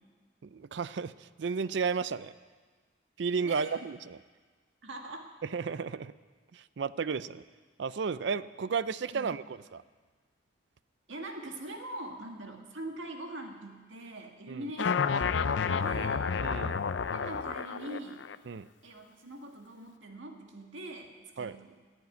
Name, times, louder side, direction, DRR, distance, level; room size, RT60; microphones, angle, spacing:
voice 1, 0.4-2.3 3.2-4.2 5.5-6.1 6.5-7.4 7.8-9.8 14.5-14.6 16.4-16.8 18.5-18.7 21.4-21.6, right 5 dB, 65° right, 16 dB, 0.4 m, -33 dB
voice 2, 3.4-3.8 4.8-5.3 9.1-9.3 11.1-16.3 17.1-18.2 18.8-21.1 21.4-21.8, right 1 dB, 80° right, 3 dB, 1.8 m, -43 dB
sound 1, 14.8-18.4, left 6 dB, 70° left, 0.5 m, -30 dB
15.0 x 8.3 x 9.5 m, 1.4 s
head